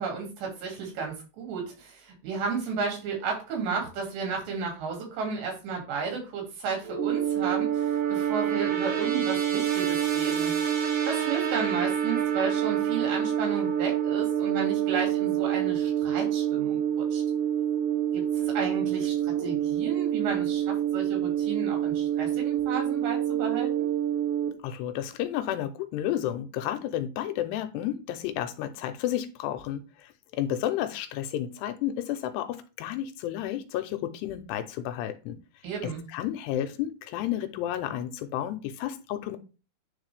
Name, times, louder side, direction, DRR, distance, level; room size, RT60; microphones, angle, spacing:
voice 1, 0.0-10.8 11.1-17.2 18.1-23.9 35.6-36.0, right 5 dB, 85° right, 0 dB, 4.7 m, -33 dB
sound 1, 6.8-24.5, right 10 dB, 55° right, 1.8 m, -27 dB
voice 2, 24.6-35.4 35.8-39.4, left 11 dB, 90° left, 9 dB, 2.8 m, -32 dB
9.7 x 4.0 x 3.4 m, 0.32 s
omnidirectional pair, 4.8 m